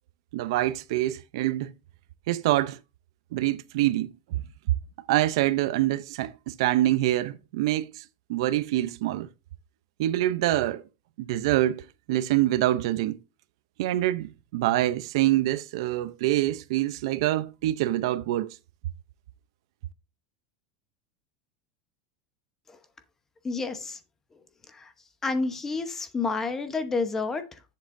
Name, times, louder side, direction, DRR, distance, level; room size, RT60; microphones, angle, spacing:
voice 1, 0.3-1.7 2.3-2.8 3.3-4.4 5.1-8.0 8.3-9.3 10.0-10.8 11.2-13.2 13.8-18.6, right 15 dB, 65° right, 0.6 m, -25 dB
voice 2, 23.4-24.0 24.3-24.9 25.2-27.6, left 4 dB, 15° left, 0.9 m, -30 dB
10.5 x 7.5 x 2.6 m
supercardioid pair, 165°, 3 cm